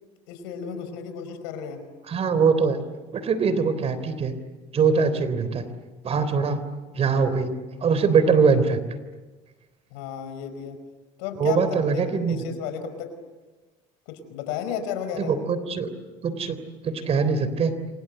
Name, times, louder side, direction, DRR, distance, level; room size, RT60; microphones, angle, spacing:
voice 1, 0.3-1.8 9.9-10.8 11.2-11.6 11.9-13.1 14.1-15.4, left 8 dB, 90° left, 8 dB, 4.9 m, -33 dB
voice 2, 2.1-2.8 3.1-4.4 4.7-5.7 6.0-6.6 6.9-7.5 7.8-8.8 11.4-12.4 15.2-15.9 16.2-16.6 16.8-17.7, right 5 dB, 45° right, 12 dB, 3.5 m, -22 dB
28.5 x 25.5 x 8.0 m, 1.2 s
supercardioid pair, 95°, 15 cm